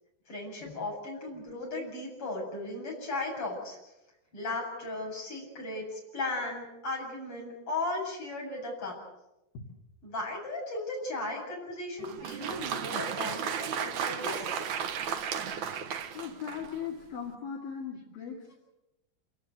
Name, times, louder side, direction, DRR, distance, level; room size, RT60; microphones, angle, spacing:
voice 1, 0.3-3.8 4.3-9.0 10.0-14.5, left 2 dB, 30° left, -1 dB, 8.5 m, -36 dB
Applause, 12.0-16.9, right 7 dB, 65° right, 2.1 m, -34 dB
voice 2, 16.1-18.5, left 7 dB, 65° left, -1 dB, 4.2 m, -39 dB
27.5 x 18.0 x 8.0 m, 0.94 s
omnidirectional pair, 4.7 m